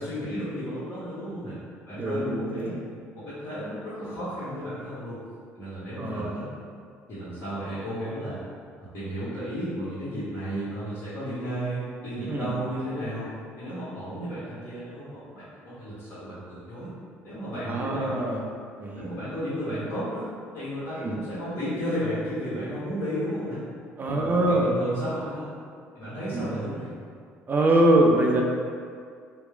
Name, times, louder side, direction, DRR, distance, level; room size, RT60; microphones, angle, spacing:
voice 1, 0.0-1.5 1.9-2.7 3.1-5.2 5.5-6.4 7.1-8.4 8.8-16.9 17.2-18.4 18.9-20.2 20.5-23.6 24.0-25.5 25.9-26.9, equal, 50° left, -12 dB, 0.9 m, -33 dB
voice 2, 1.9-2.8 6.0-6.4 12.2-12.5 17.6-18.4 18.8-19.1 21.0-21.1 24.0-24.7 26.3-26.5 27.5-28.4, right 1 dB, 30° right, 0 dB, 0.4 m, -23 dB
2.9 x 2.1 x 2.3 m, 2.2 s
hypercardioid pair, 55°, 6 cm